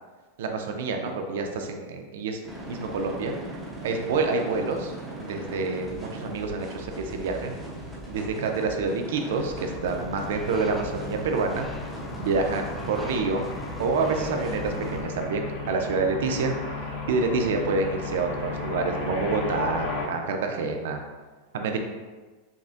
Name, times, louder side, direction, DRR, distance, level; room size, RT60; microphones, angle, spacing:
voice 1, 0.4-2.4 2.7-3.3 3.8-4.9 5.2-7.5 8.1-11.7 12.2-13.5 13.8-21.0 21.5-21.8, right 4 dB, 80° right, 4 dB, 0.5 m, -27 dB
sound 1, 2.4-15.1, right 1 dB, 5° right, 0.9 m, -39 dB
sound 2, 9.2-20.1, left 3 dB, 55° left, 1.2 m, -35 dB
sound 3, 9.8-15.0, left 2 dB, 10° left, 0.3 m, -43 dB
5.8 x 2.1 x 2.6 m, 1.3 s
supercardioid pair, 155°, 0 cm